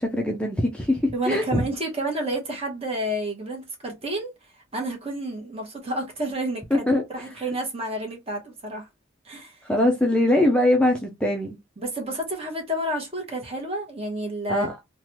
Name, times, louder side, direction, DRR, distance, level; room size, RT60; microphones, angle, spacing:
voice 1, 0.0-1.6 6.7-7.0 9.7-11.6 14.5-14.8, left 1 dB, 5° left, 0.4 m, -22 dB
voice 2, 1.1-4.3 4.7-8.9 9.2-9.6 11.8-14.7, right 1 dB, 30° right, 1.0 m, -30 dB
3.2 x 2.2 x 2.9 m
head